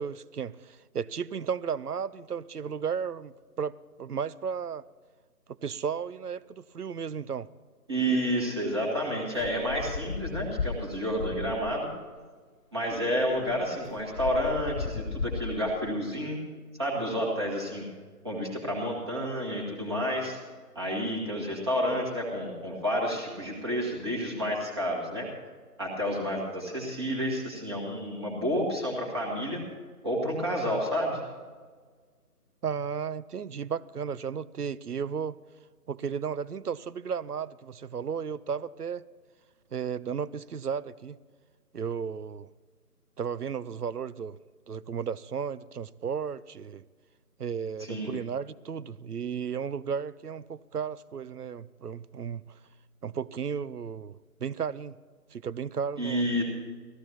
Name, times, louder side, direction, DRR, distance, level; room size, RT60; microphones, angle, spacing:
voice 1, 0.0-4.8 5.5-7.5 32.6-35.4 35.9-39.0 39.7-41.2 41.7-42.5 43.2-44.4 44.7-46.8 47.4-52.5 53.0-54.9 55.3-56.2, right 7 dB, 75° right, 0.7 m, -34 dB
voice 2, 7.9-11.9 12.7-16.4 16.8-17.9 18.2-20.4 20.7-25.3 25.8-29.6 30.0-31.2 47.8-48.1 56.0-56.4, equal, 15° right, 1.5 m, -30 dB
sound 1, 9.4-11.9 12.9-13.0 13.3-15.9, left 4 dB, 60° left, 0.5 m, -36 dB
18.5 x 14.5 x 2.9 m
figure-of-eight pair, 160°, 47 cm